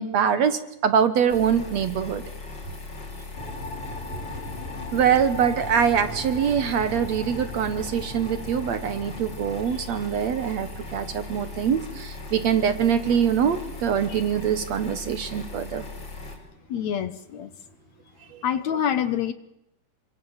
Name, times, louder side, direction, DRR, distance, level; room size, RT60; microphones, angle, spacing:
voice 1, 0.0-2.2 4.1-4.2 4.9-15.9 18.3-18.4, right 8 dB, 60° right, 11 dB, 2.0 m, -24 dB
sound 1, 1.3-16.4, left 3 dB, 30° left, 5.1 m, -39 dB
sound 2, 3.4-12.9, left 1 dB, 80° left, 6.7 m, -39 dB
voice 2, 16.7-17.5 18.4-19.3, left 9 dB, 65° left, 12 dB, 2.1 m, -26 dB
28.0 x 24.5 x 7.3 m, 0.83 s
omnidirectional pair, 4.0 m